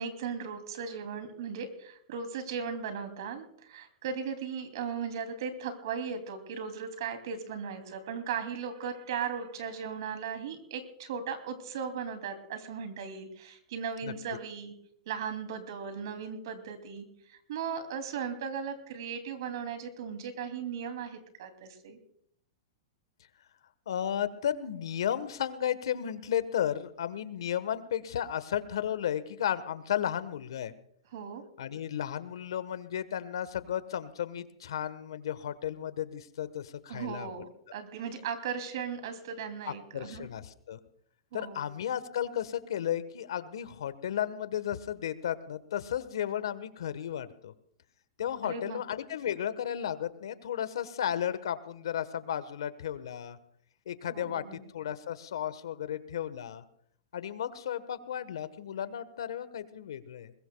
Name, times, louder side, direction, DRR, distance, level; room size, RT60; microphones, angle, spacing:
voice 1, 0.0-14.7 15.1-22.0 31.1-31.4 36.9-40.3 41.3-41.7 48.4-48.8 54.1-54.6, right 6 dB, 65° right, 8 dB, 2.8 m, -37 dB
voice 2, 23.9-30.7 31.6-37.3 39.7-40.8 41.3-47.5 48.2-53.4 53.9-56.6 57.1-60.3, left 10 dB, 85° left, 14 dB, 1.2 m, -34 dB
21.0 x 21.0 x 2.3 m, 0.67 s
hypercardioid pair, 150°, 3 cm